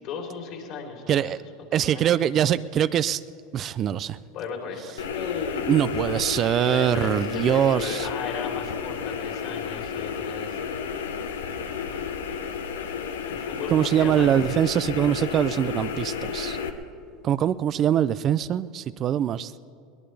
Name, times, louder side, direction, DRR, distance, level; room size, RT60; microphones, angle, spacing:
voice 1, 0.0-1.3 1.8-2.3 4.3-5.8 6.6-10.7 11.7-12.1 13.3-14.6, left 5 dB, 55° left, 0 dB, 3.6 m, -36 dB
voice 2, 1.1-1.4 1.7-3.2 3.5-4.2 5.7-8.1 13.7-16.6 17.2-19.6, right 10 dB, 40° right, 16 dB, 0.4 m, -23 dB
sound 1, 5.0-16.7, left 6 dB, 90° left, 0.9 m, -32 dB
22.5 x 18.0 x 3.4 m, 2.4 s
hypercardioid pair, 95°, 0 cm